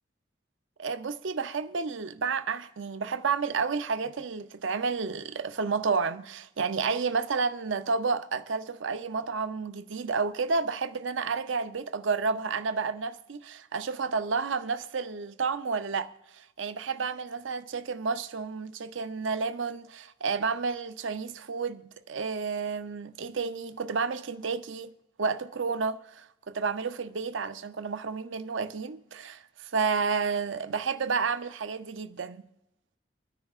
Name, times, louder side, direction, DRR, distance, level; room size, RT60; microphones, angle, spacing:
voice 1, 0.8-24.9 25.2-32.4, right 5 dB, 80° right, 0.6 m, -31 dB
25.5 x 9.8 x 2.4 m
head